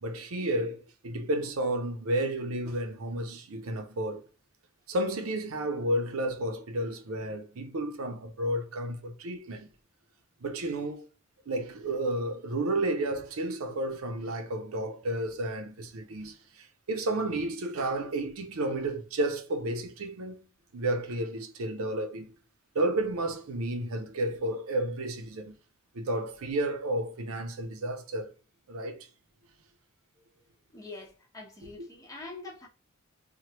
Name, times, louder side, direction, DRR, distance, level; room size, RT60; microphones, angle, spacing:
voice 1, 0.0-4.2 4.9-9.7 10.4-11.1 11.5-20.4 20.7-22.3 22.7-25.5 25.9-28.3 28.7-29.0 31.8-31.9, right 1 dB, 80° right, 0.6 m, -32 dB
voice 2, 30.7-32.7, left 3 dB, 15° left, 1.0 m, -45 dB
3.1 x 2.2 x 2.9 m
head